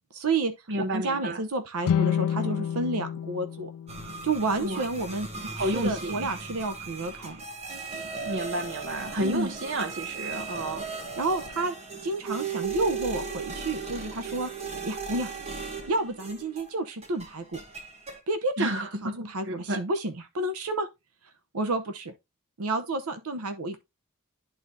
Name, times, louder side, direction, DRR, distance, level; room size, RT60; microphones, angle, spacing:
voice 1, 0.1-0.5 0.9-3.7 4.2-7.4 9.2-9.5 11.2-11.7 12.0-14.5 14.8-15.3 15.9-17.6 18.3-20.9 21.5-22.1 22.6-23.8, right 2 dB, 85° right, 0.8 m, -30 dB
voice 2, 0.7-1.5 4.6-4.8 5.5-6.3 8.2-10.9 18.6-19.8, right 1 dB, 55° right, 1.0 m, -31 dB
sound 1, 1.8-5.1, left 8 dB, 85° left, 0.3 m, -30 dB
sound 2, 3.9-16.8 17.0-18.2, right 5 dB, 30° right, 1.1 m, -37 dB
11.0 x 4.0 x 2.7 m
head